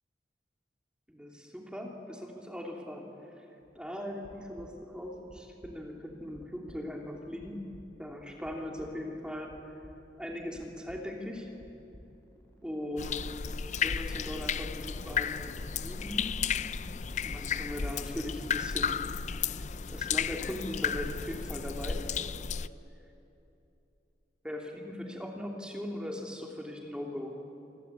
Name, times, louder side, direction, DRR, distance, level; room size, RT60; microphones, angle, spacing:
voice 1, 1.1-3.1 3.4-3.5 3.7-7.6 8.0-9.7 10.2-11.5 12.6-13.3 13.8-16.3 17.2-19.0 19.3-19.6 19.9-22.0 24.4-27.3, left 1 dB, 5° right, 0 dB, 3.0 m, -39 dB
sound 1, 3.6-3.8 4.1-5.0 5.3-5.9 6.3-7.0 7.4-8.1 8.4-9.1 9.5-10.3 10.5-12.1, equal, 30° right, 5.3 m, -55 dB
sound 2, 11.6-18.1, right 1 dB, 15° left, 5.6 m, -59 dB
sound 3, 13.0-22.7, left 7 dB, 40° left, 0.5 m, -33 dB
27.5 x 22.0 x 8.3 m, 2.8 s
head